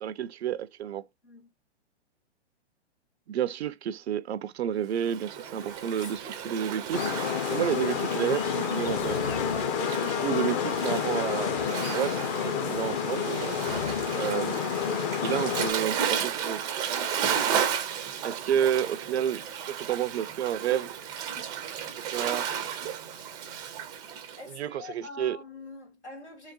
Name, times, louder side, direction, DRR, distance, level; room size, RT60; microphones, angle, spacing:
voice 1, 0.0-1.0 3.3-7.0 7.5-9.2 10.0-11.6 11.9-13.6 14.2-14.6 15.2-16.7 18.2-20.9 22.0-22.5 24.5-25.4, right 10 dB, 70° right, 0.5 m, -30 dB
Waves surf, 5.0-24.4, right 8 dB, 15° right, 0.4 m, -34 dB
sound 1, 5.6-16.4, left 5 dB, 50° left, 1.0 m, -43 dB
sound 2, 6.9-15.7, left 6 dB, 30° left, 0.6 m, -29 dB
voice 2, 24.3-26.5, left 3 dB, 90° left, 2.8 m, -45 dB
3.8 x 3.0 x 2.8 m
figure-of-eight pair, 115°, 33 cm